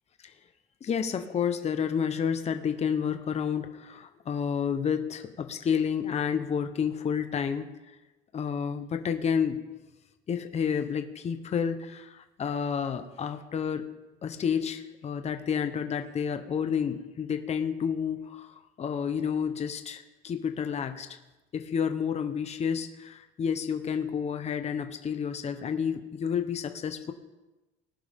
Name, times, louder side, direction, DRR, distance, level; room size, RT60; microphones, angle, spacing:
voice 1, 0.8-7.7 8.3-9.6 10.3-13.8 14.2-21.1 21.5-27.1, left 7 dB, 30° left, 7 dB, 0.9 m, -30 dB
19.0 x 10.5 x 3.6 m, 1.1 s
cardioid pair, 140°, 21 cm